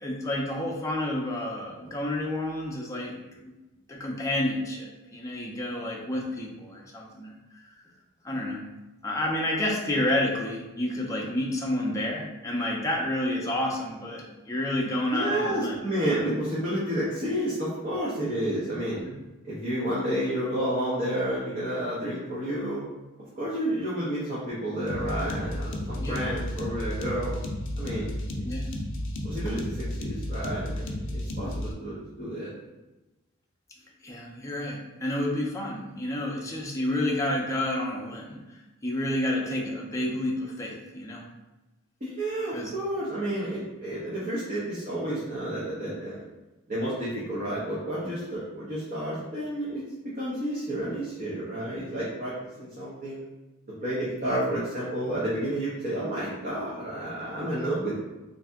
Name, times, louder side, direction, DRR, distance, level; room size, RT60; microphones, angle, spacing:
voice 1, 0.0-3.5 3.9-7.3 8.2-8.7 9.0-16.3 18.9-19.1 26.0-26.3 28.4-28.7 34.0-38.4 38.8-41.3 42.5-42.7 54.2-54.4, left 1 dB, 15° left, -2 dB, 0.5 m, -30 dB
voice 2, 15.1-19.0 19.4-22.8 23.4-27.4 27.8-28.1 29.2-32.5 42.0-46.2 46.7-49.8 50.2-53.2 53.8-58.0, right 1 dB, 40° right, -9 dB, 0.9 m, -30 dB
sound 1, 24.9-31.7, left 1 dB, 60° left, 0.5 m, -33 dB
3.3 x 2.7 x 3.5 m, 1.1 s
head